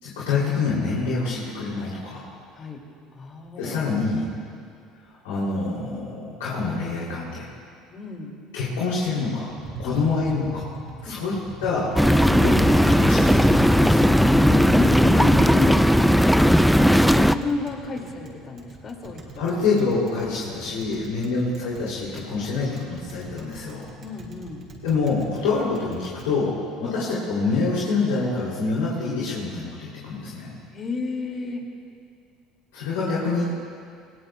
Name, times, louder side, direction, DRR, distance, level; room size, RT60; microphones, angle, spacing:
voice 1, 0.0-2.3 3.6-4.3 5.2-7.5 8.5-10.7 11.0-11.4 11.6-11.9 12.3-14.1 19.4-23.8 24.8-30.6 32.7-33.5, left 4 dB, 90° left, -7 dB, 2.9 m, -26 dB
voice 2, 3.1-3.8 7.9-8.4 9.8-9.9 11.1-11.3 14.4-15.9 17.2-19.5 21.2-21.3 24.0-24.6 26.8-27.0 30.7-31.6, left 3 dB, 40° left, 1 dB, 2.3 m, -32 dB
Tap, 9.5-26.3, right 2 dB, 45° right, 4.2 m, -41 dB
sound 1, 12.0-17.3, equal, ahead, 0.4 m, -17 dB
20.5 x 18.5 x 2.3 m, 2.4 s
supercardioid pair, 90°, 0 cm